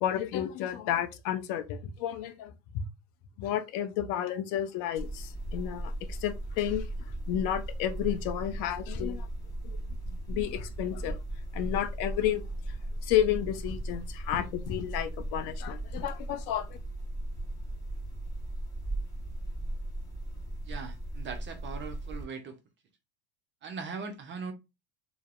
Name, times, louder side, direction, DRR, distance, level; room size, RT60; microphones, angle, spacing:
voice 1, 0.0-2.8 3.4-6.9 7.3-9.3 9.6-9.8 10.1-11.2 11.5-12.4 13.0-16.7, left 11 dB, 55° left, 0.5 m, -31 dB
sound 1, 5.0-22.2, right 1 dB, 10° left, 1.2 m, -37 dB
voice 2, 20.7-22.6 23.6-24.5, right 5 dB, 30° right, 0.4 m, -40 dB
2.5 x 2.0 x 2.4 m
hypercardioid pair, 95°, 42 cm